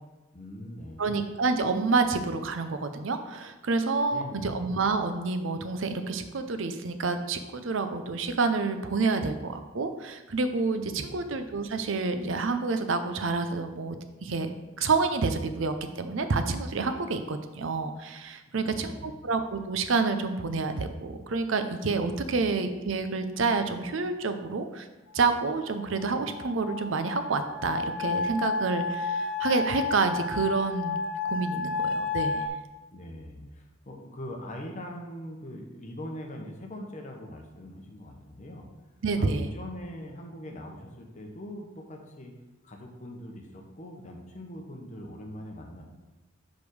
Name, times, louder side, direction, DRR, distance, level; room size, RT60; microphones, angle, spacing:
voice 1, 0.3-1.2 4.1-4.5 10.9-11.2 18.5-19.2 22.3-22.4 32.9-38.7 39.2-42.3 42.6-45.8, left 1 dB, 40° left, 1 dB, 1.1 m, -42 dB
voice 2, 1.0-14.0 14.2-24.9 25.1-31.0 31.2-32.4 39.0-39.5, right 4 dB, 65° right, 9 dB, 0.6 m, -28 dB
sound 1, 25.3-32.5, left 4 dB, 75° left, 0.8 m, -31 dB
5.1 x 5.1 x 6.3 m, 1.1 s
head